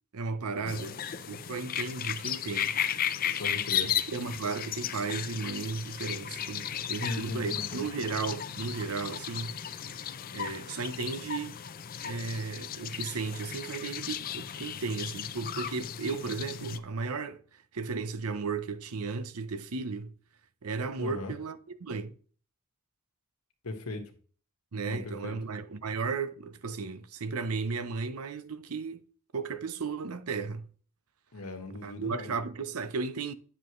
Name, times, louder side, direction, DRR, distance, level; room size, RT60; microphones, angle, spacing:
voice 1, 0.1-1.0 1.3-2.8 3.8-9.6 10.3-11.6 12.0-17.4 17.7-20.1 20.6-22.1 24.7-29.0 29.3-30.7 31.8-33.3, right 4 dB, 85° right, 0.7 m, -35 dB
sound 1, 0.7-16.8, left 9 dB, 40° left, 0.5 m, -35 dB
voice 2, 3.4-4.0 6.9-7.9 21.0-21.4 23.6-24.0 24.8-25.3 31.3-32.3, left 2 dB, 90° left, 1.5 m, -38 dB
10.0 x 7.0 x 3.1 m
head